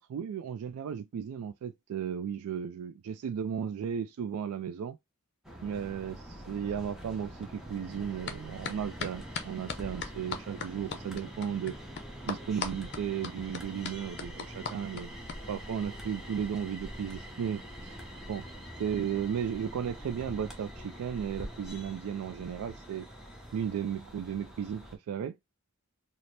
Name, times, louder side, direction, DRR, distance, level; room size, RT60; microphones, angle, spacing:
voice 1, 0.0-5.0 5.6-11.8 12.3-15.1 15.5-18.0 18.3-18.5 18.8-23.1 23.5-25.4, right 8 dB, 80° right, 0.3 m, -35 dB
sound 1, 5.4-25.0, equal, ahead, 0.8 m, -45 dB
sound 2, 8.3-8.4 8.6-15.4, left 6 dB, 50° left, 0.6 m, -37 dB
4.1 x 2.0 x 3.2 m
head